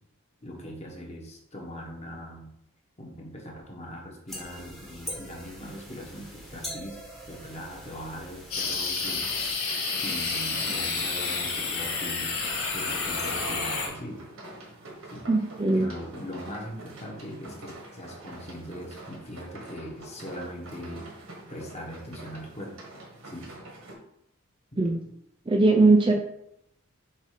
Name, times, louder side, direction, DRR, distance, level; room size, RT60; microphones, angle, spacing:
voice 1, 0.4-2.5 3.0-7.0 7.3-9.3 10.0-12.4 12.7-14.2 15.1-15.3 15.7-21.1 21.5-22.8 23.2-23.5 26.1-26.2, equal, 30° left, -1 dB, 1.3 m, -40 dB
sound 1, 4.3-9.5, equal, ahead, 1.1 m, -43 dB
sound 2, 8.5-13.9, left 4 dB, 75° left, 1.5 m, -29 dB
sound 3, 8.5-23.9, right 1 dB, 65° right, 1.5 m, -46 dB
voice 2, 15.3-15.9 24.8-25.0 25.5-26.1, right 3 dB, 20° right, 3 dB, 0.4 m, -20 dB
7.3 x 2.8 x 5.0 m, 0.76 s
head